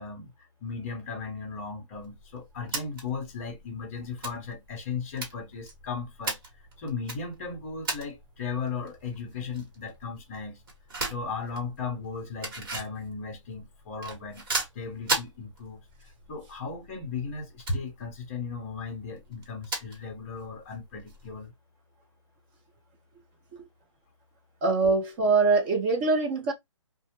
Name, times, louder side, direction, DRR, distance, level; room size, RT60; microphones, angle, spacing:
voice 1, 0.0-6.4 6.8-10.6 11.1-14.4 14.7-15.8 16.3-21.5, left 5 dB, 25° left, 0.8 m, -36 dB
sound 1, 1.9-21.5, right 2 dB, 40° right, 1.1 m, -39 dB
voice 2, 24.6-26.5, right 4 dB, 15° right, 0.5 m, -23 dB
2.1 x 2.1 x 2.9 m
hypercardioid pair, 160°, 17 cm